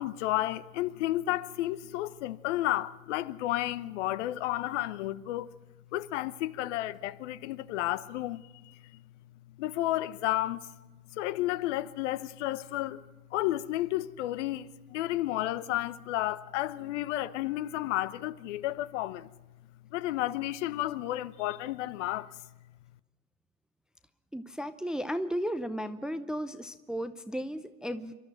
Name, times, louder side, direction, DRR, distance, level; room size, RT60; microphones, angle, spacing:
voice 1, 0.0-5.5 5.9-8.8 9.6-10.7 11.1-13.0 13.3-19.3 19.9-22.3, left 15 dB, 55° left, 1.0 m, -32 dB
voice 2, 24.3-28.1, equal, ahead, 0.6 m, -34 dB
28.5 x 12.0 x 8.8 m
hypercardioid pair, 115°, 42 cm